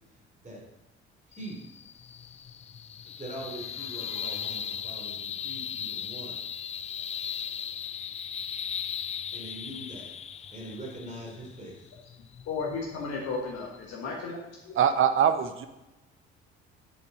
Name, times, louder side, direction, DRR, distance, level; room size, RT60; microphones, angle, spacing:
sound 1, 1.3-14.0, left 8 dB, 20° left, 0.3 m, -38 dB
voice 1, 1.3-1.7 3.2-6.4 9.3-10.1 10.4-11.9, right 1 dB, 25° right, -2 dB, 3.5 m, -42 dB
voice 2, 12.4-14.7, left 4 dB, 50° left, -1 dB, 1.5 m, -34 dB
voice 3, 14.8-15.7, right 8 dB, 40° right, 9 dB, 0.9 m, -23 dB
8.3 x 7.0 x 4.1 m, 0.98 s
figure-of-eight pair, 50°, 31 cm